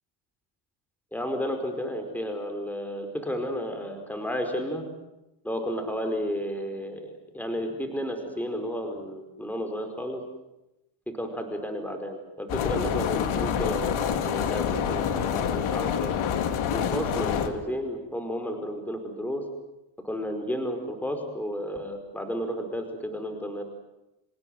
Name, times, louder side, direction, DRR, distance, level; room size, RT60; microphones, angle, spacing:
voice 1, 1.1-4.8 5.4-10.2 11.2-16.1 16.7-19.4 20.0-23.6, equal, 5° left, 5 dB, 5.0 m, -32 dB
sound 1, 12.5-17.5, left 8 dB, 75° left, 2.4 m, -27 dB
28.5 x 16.5 x 9.6 m, 0.94 s
cardioid pair, 100°, 49 cm